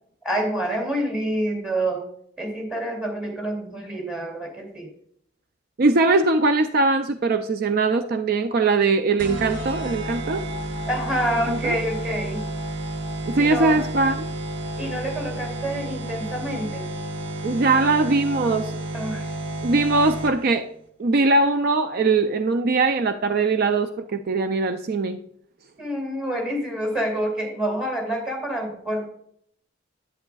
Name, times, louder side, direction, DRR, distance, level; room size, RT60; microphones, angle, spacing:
voice 1, 0.2-2.1 2.4-4.9 10.9-12.4 13.3-13.8 14.8-16.8 18.9-19.3 25.8-29.1, right 1 dB, 5° right, 0 dB, 2.6 m, -27 dB
voice 2, 5.8-10.4 11.5-11.8 13.3-14.3 17.4-18.7 19.6-20.7 21.0-25.2, right 3 dB, 50° right, 8 dB, 0.4 m, -21 dB
sound 1, 9.2-20.6, right 1 dB, 70° right, 1.0 m, -31 dB
10.5 x 8.3 x 2.3 m, 0.66 s
head